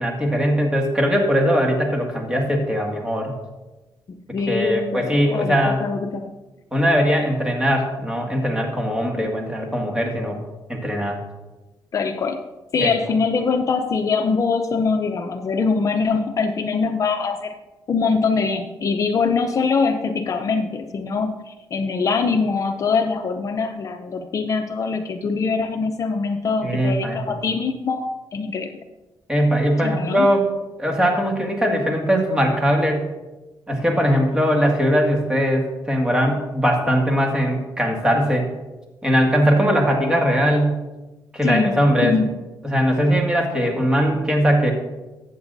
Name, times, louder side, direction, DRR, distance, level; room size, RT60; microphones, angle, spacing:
voice 1, 0.0-3.3 4.5-5.8 6.7-10.4 10.7-11.2 12.8-12.9 26.6-27.2 29.3-30.5 30.8-33.1 33.7-38.5 39.0-40.8 41.3-42.1 42.6-44.7, equal, 10° right, 1 dB, 2.0 m, -20 dB
voice 2, 4.3-6.3 11.9-12.4 12.7-17.5 17.9-28.7 29.8-30.3 41.4-41.8 42.0-42.3, left 4 dB, 45° left, 6 dB, 0.6 m, -23 dB
14.0 x 8.1 x 2.7 m, 1.1 s
cardioid pair, 100°, 8 cm